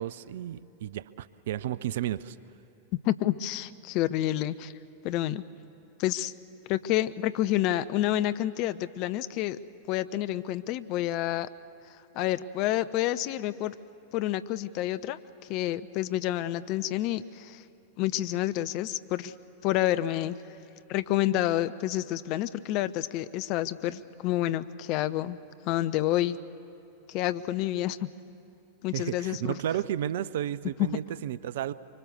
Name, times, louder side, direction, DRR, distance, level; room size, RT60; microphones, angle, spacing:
voice 1, 0.0-2.4 28.9-31.7, right 11 dB, 55° right, 18 dB, 0.5 m, -32 dB
voice 2, 3.0-4.7 5.0-5.4 6.0-6.3 6.7-9.6 9.9-11.5 12.1-13.7 14.1-17.6 18.0-19.3 19.6-20.4 20.9-25.4 25.6-26.4 27.1-28.1 28.8-29.6 30.8-31.0, left 14 dB, 40° left, 14 dB, 0.6 m, -29 dB
25.0 x 24.5 x 6.8 m, 2.8 s
figure-of-eight pair, 90°, 0 cm